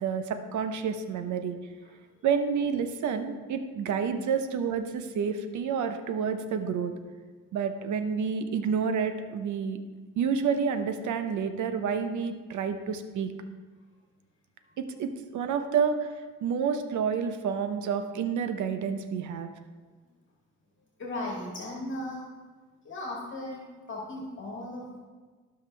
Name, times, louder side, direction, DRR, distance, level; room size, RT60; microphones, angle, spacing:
voice 1, 0.0-1.6 2.2-6.9 7.5-9.8 10.2-13.3 14.8-16.1 16.4-19.5, right 6 dB, 75° right, 8 dB, 0.8 m, -29 dB
voice 2, 1.8-2.2 14.7-14.8 21.0-22.3 22.8-25.0, left 1 dB, 40° left, -2 dB, 1.9 m, -37 dB
15.0 x 5.8 x 3.3 m, 1.4 s
cardioid pair, 90°, 30 cm